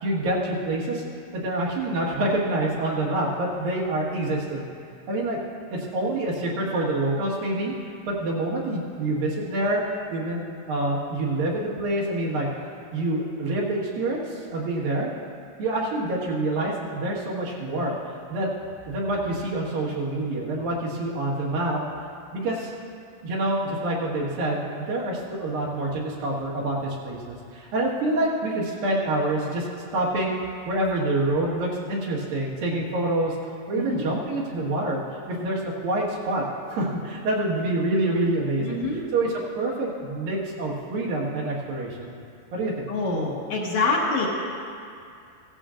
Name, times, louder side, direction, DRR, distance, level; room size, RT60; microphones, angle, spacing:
voice 1, 0.0-1.0 1.3-4.7 5.1-5.4 5.7-7.7 8.1-9.8 10.1-12.5 12.9-15.1 15.6-18.0 18.3-18.5 18.9-21.8 22.3-22.7 23.2-29.7 29.9-30.3 30.7-33.4 33.7-38.8 39.1-42.2 42.5-42.9, right 2 dB, 90° right, -4 dB, 3.4 m, -26 dB
voice 2, 38.6-39.0 42.9-44.3, left 3 dB, 60° left, -3 dB, 2.3 m, -25 dB
16.5 x 14.0 x 2.5 m, 2.4 s
omnidirectional pair, 3.9 m